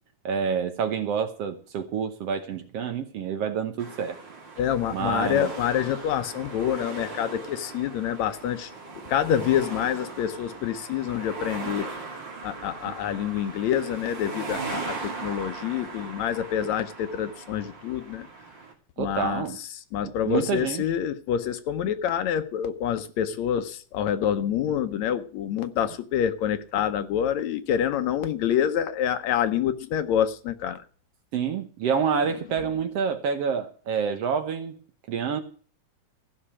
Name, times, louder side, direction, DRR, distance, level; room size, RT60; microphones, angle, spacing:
voice 1, 0.3-4.2 4.9-5.5 19.0-19.6 20.0-20.8 31.3-34.8 35.1-35.4, right 6 dB, 65° right, 1.8 m, -28 dB
sound 1, 3.8-18.7, right 3 dB, 40° right, 3.0 m, -39 dB
voice 2, 4.6-8.7 9.1-11.9 12.4-18.3 19.0-19.5 19.9-30.8, left 9 dB, 75° left, 2.0 m, -27 dB
14.5 x 6.0 x 8.6 m
omnidirectional pair, 3.5 m